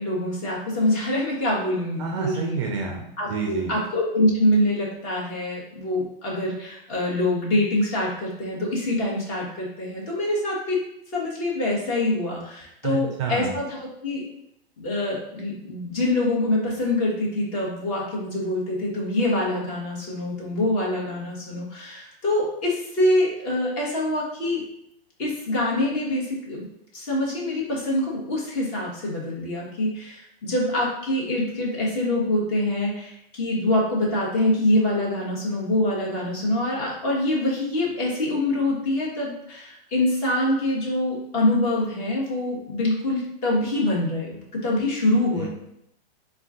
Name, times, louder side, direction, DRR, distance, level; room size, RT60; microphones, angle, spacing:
voice 1, 0.0-2.6 3.2-10.8 11.1-13.8 14.0-14.2 14.8-24.6 25.2-26.6 26.9-45.5, left 1 dB, 35° left, -4 dB, 1.4 m, -25 dB
voice 2, 2.0-3.7 12.8-13.6 45.4-45.5, right 5 dB, 30° right, 1 dB, 0.4 m, -29 dB
4.3 x 2.3 x 3.7 m, 0.77 s
hypercardioid pair, 155°, 30 cm